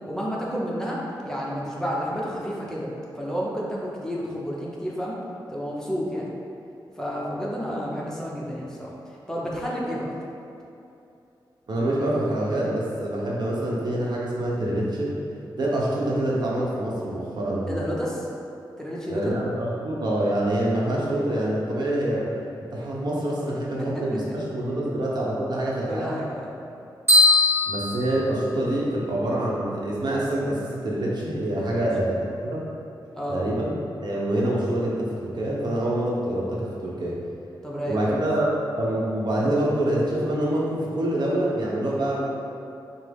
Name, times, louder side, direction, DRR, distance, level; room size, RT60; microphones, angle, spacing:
voice 1, 0.1-2.9 3.2-5.1 5.5-6.3 7.0-8.9 9.3-10.1 17.7-18.3 18.8-19.3 25.9-26.5 31.7-31.9 33.1-33.4 37.6-38.2, equal, 5° left, -5 dB, 0.7 m, -30 dB
voice 2, 11.7-15.1 15.6-17.7 19.1-22.3 22.7-26.1 27.7-32.6 33.3-33.8 34.0-37.2 37.8-42.2, right 1 dB, 60° right, -5 dB, 0.8 m, -26 dB
sound 1, 27.1-29.0, left 2 dB, 30° right, 1.2 m, -20 dB
5.9 x 2.0 x 3.4 m, 2.7 s
cardioid pair, 80°, 8 cm